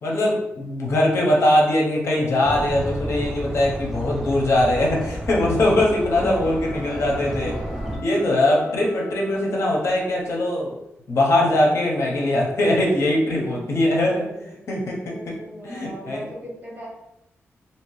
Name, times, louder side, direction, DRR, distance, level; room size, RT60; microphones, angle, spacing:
voice 1, 0.0-7.6 8.0-10.7 11.1-14.3 14.7-15.4 15.6-16.2, left 1 dB, 70° left, -2 dB, 0.8 m, -21 dB
sound 1, 2.4-8.0, equal, 5° right, 0.5 m, -31 dB
sound 2, 5.3-9.8, left 2 dB, 40° left, 1.3 m, -41 dB
voice 2, 8.0-9.0 13.1-14.6 15.1-16.9, equal, 30° right, -5 dB, 1.1 m, -40 dB
2.8 x 2.8 x 3.1 m, 0.87 s
wide cardioid pair, 165°, 5 cm